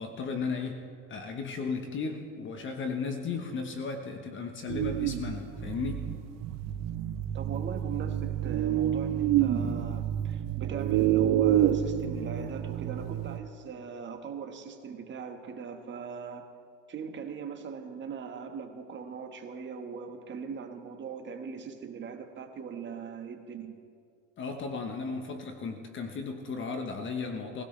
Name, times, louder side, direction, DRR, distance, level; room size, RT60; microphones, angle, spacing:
voice 1, 0.0-6.1 24.4-27.6, left 4 dB, 35° left, 5 dB, 1.2 m, -35 dB
sound 1, 4.7-13.4, right 11 dB, 50° right, 0.9 m, -28 dB
voice 2, 7.3-16.4 16.9-23.7, right 6 dB, 30° right, 5 dB, 1.5 m, -40 dB
20.0 x 16.5 x 3.3 m, 2.3 s
supercardioid pair, 115°, 35 cm